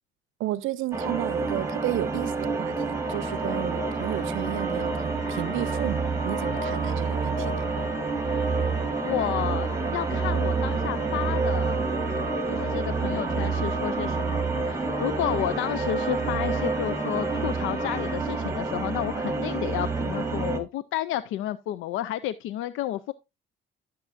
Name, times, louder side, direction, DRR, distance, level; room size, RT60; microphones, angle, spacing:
voice 1, 0.4-7.7, right 15 dB, 80° right, 0.5 m, -32 dB
sound 1, 0.9-20.6, right 4 dB, 15° right, 1.6 m, -28 dB
sound 2, 3.0-18.2, left 1 dB, 35° left, 2.2 m, -38 dB
voice 2, 9.0-11.8 12.5-23.1, left 13 dB, 85° left, 0.4 m, -31 dB
13.5 x 6.8 x 2.5 m
cardioid pair, 90°, 20 cm